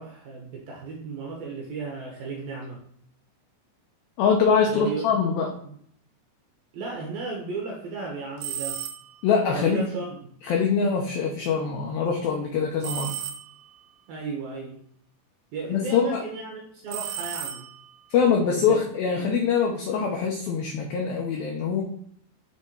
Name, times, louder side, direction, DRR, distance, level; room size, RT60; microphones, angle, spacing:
voice 1, 0.0-2.8 4.7-5.0 5.6-5.8 6.7-8.8 9.5-10.1 14.1-14.8 15.5-17.7 18.7-18.8 19.1-19.2, right 4 dB, 65° right, -2 dB, 2.4 m, -35 dB
voice 2, 4.2-5.6 9.2-9.9 10.4-13.1 15.7-16.2 18.1-21.8, left 6 dB, 85° left, 0 dB, 2.1 m, -23 dB
sound 1, 8.4-9.3 12.8-13.8 16.9-18.0, right 10 dB, 85° right, 2.4 m, -34 dB
9.5 x 3.6 x 4.4 m, 0.64 s
omnidirectional pair, 5.4 m